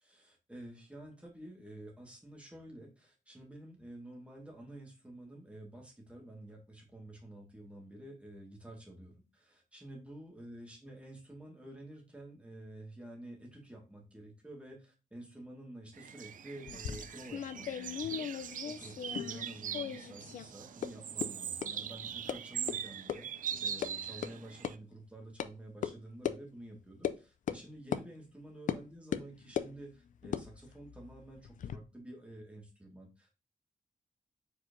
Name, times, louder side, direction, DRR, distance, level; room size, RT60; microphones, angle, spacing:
voice 1, 0.0-33.3, right 1 dB, 10° right, 0 dB, 1.7 m, -50 dB
sound 1, 15.9-24.8, right 8 dB, 75° right, 0.4 m, -41 dB
sound 2, 16.6-19.5 19.7-20.5 20.8-20.9 21.2-21.3 21.6-21.7 22.3-22.4 22.7-22.8 23.1-23.2 23.5-23.9 24.2-24.3 24.6-24.7 25.4-25.5 25.8-25.9 26.2-26.4 27.0-27.2 27.5-27.6 27.9-28.0 28.7-28.8 29.1-29.7 30.2-31.8, left 9 dB, 70° left, 0.4 m, -37 dB
4.7 x 4.4 x 2.6 m, 0.30 s
wide cardioid pair, 115°, 14 cm